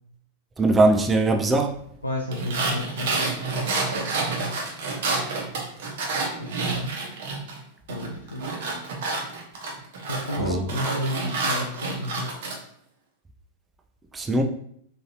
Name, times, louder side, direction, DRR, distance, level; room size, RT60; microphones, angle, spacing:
voice 1, 0.6-1.8 10.4-10.6 14.1-14.4, right 2 dB, 15° right, 0.4 m, -20 dB
voice 2, 2.0-3.1 4.4-4.5 6.3-6.9 7.9-8.5 10.1-12.3, left 1 dB, 85° left, 0.4 m, -31 dB
sound 1, 2.3-7.6 7.9-12.6, right 3 dB, 55° right, 0.9 m, -28 dB
3.8 x 2.8 x 2.8 m
figure-of-eight pair, 90°, 0 cm